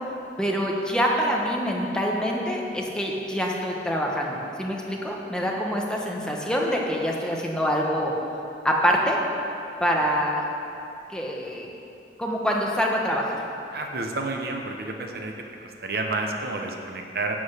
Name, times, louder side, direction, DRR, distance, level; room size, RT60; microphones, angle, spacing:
voice 1, 0.4-8.1 8.6-9.2 9.8-10.4 11.1-11.7 12.2-13.4, equal, 5° left, -2 dB, 1.2 m, -25 dB
voice 2, 13.7-15.3 15.6-17.4, right 2 dB, 60° right, 2 dB, 1.0 m, -30 dB
11.0 x 6.2 x 8.2 m, 2.7 s
head